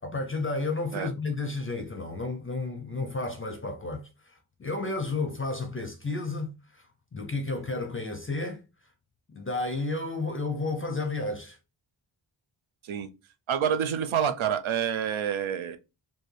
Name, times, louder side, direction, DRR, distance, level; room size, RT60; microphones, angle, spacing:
voice 1, 0.0-6.9 7.1-8.6 9.4-11.6, left 3 dB, 30° left, 0.4 m, -32 dB
voice 2, 13.5-15.8, right 8 dB, 85° right, 0.6 m, -28 dB
4.5 x 2.6 x 3.2 m
wide cardioid pair, 160°, 46 cm